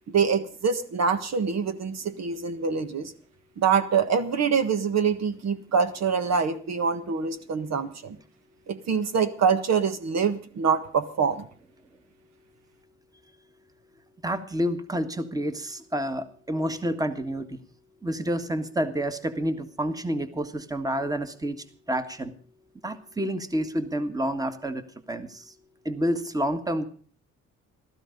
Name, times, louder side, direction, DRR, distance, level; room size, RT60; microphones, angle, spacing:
voice 1, 0.1-3.1 3.6-8.2 8.7-11.5, right 6 dB, 60° right, 10 dB, 1.5 m, -25 dB
voice 2, 14.2-17.5 18.0-21.6 21.9-22.3 22.8-24.8 25.1-25.4 25.8-26.8, equal, 10° right, 10 dB, 1.6 m, -29 dB
15.5 x 13.5 x 5.3 m, 0.43 s
cardioid pair, 90°, 30 cm